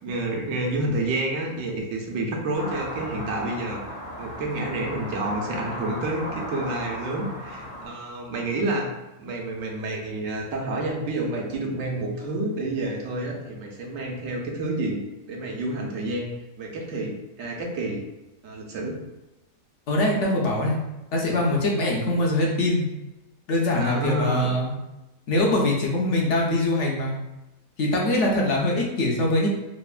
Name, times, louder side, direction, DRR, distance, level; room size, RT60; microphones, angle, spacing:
voice 1, 0.0-3.8 4.2-8.9 9.2-15.0 15.3-16.3 16.6-18.0 18.4-19.0 23.8-24.5, right 2 dB, 80° right, 0 dB, 1.0 m, -29 dB
sound 1, 2.5-7.9, equal, 85° left, 1.4 m, -35 dB
voice 2, 19.9-20.8 21.1-22.9 23.5-24.7 25.3-27.2 27.8-29.5, left 1 dB, 70° left, -2 dB, 0.9 m, -23 dB
3.1 x 2.1 x 2.3 m, 0.99 s
omnidirectional pair, 1.4 m